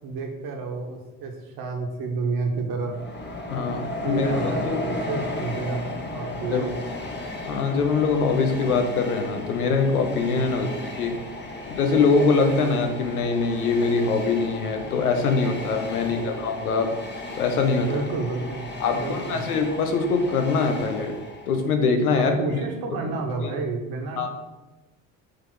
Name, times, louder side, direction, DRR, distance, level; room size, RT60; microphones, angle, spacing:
voice 1, 0.0-2.9 4.0-6.7 10.5-10.7 16.2-16.3 17.7-19.4 22.2-24.3, right 3 dB, 55° right, 2 dB, 1.7 m, -30 dB
Train, 2.8-21.8, left 2 dB, 25° left, 1.4 m, -34 dB
voice 2, 3.5-4.8 6.5-6.7 7.4-11.2 11.7-16.9 17.3-17.9 18.8-21.1 21.5-22.6 24.2-24.3, left 4 dB, 80° left, 5 dB, 1.0 m, -23 dB
6.4 x 4.0 x 6.4 m, 1.1 s
hypercardioid pair, 60°, 44 cm